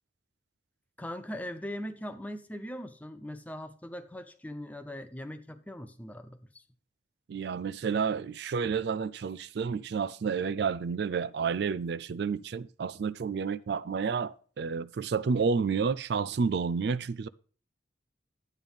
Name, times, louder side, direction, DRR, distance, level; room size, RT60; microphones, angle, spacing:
voice 1, 1.0-6.6, equal, 10° left, 0.5 m, -40 dB
voice 2, 7.3-17.3, right 5 dB, 55° right, 0.4 m, -30 dB
11.5 x 9.0 x 3.5 m
head